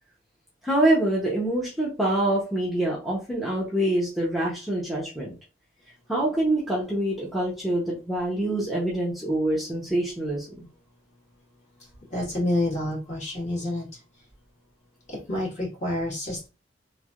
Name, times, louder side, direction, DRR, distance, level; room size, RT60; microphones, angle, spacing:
voice 1, 0.6-5.3 6.1-10.5, right 1 dB, ahead, -6 dB, 0.7 m, -25 dB
voice 2, 12.1-13.9 15.1-16.5, left 1 dB, 40° left, -4 dB, 1.6 m, -28 dB
3.2 x 2.6 x 2.4 m, 0.30 s
head